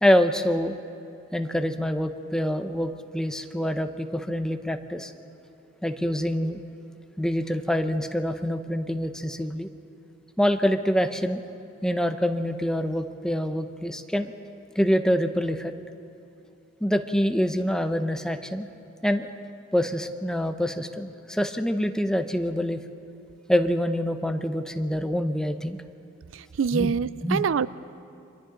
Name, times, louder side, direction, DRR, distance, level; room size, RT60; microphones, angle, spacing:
voice 1, 0.0-0.7 1.3-5.1 5.8-6.6 7.2-9.7 10.4-11.4 11.8-14.3 14.8-15.7 16.8-18.7 19.0-19.3 19.7-22.8 23.5-25.8 26.7-26.9 27.2-27.4, equal, 5° left, 7 dB, 0.7 m, -25 dB
voice 2, 26.3-27.7, right 6 dB, 75° right, 17 dB, 0.4 m, -25 dB
29.0 x 24.5 x 3.8 m, 2.7 s
head